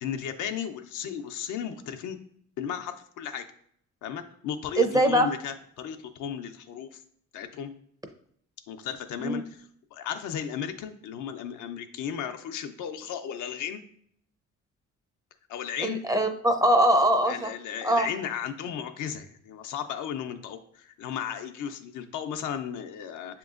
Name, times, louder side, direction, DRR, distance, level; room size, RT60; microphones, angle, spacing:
voice 1, 0.0-2.2 2.6-3.5 4.0-7.0 7.3-7.7 8.7-13.8 15.5-16.0 17.2-23.4, left 8 dB, 80° left, 7 dB, 0.5 m, -35 dB
voice 2, 4.8-5.3 9.2-9.4 15.8-17.5 17.8-18.1, right 1 dB, 10° right, 5 dB, 0.5 m, -22 dB
6.9 x 2.9 x 2.4 m, 0.65 s
cardioid pair, 90°, 30 cm